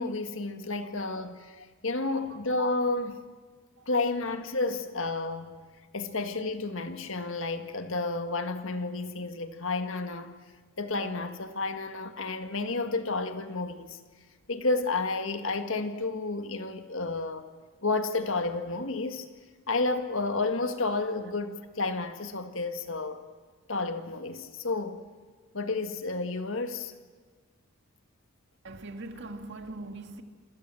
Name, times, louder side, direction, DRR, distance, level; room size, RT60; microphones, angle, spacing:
voice 1, 0.0-3.2 3.9-5.5 5.9-10.4 10.8-14.0 14.5-17.5 17.8-19.3 19.7-23.2 23.7-25.0 25.5-26.9, left 3 dB, 60° left, 1.8 m, -31 dB
voice 2, 28.6-30.2, right 2 dB, 50° right, 2.1 m, -41 dB
27.5 x 26.5 x 7.7 m
head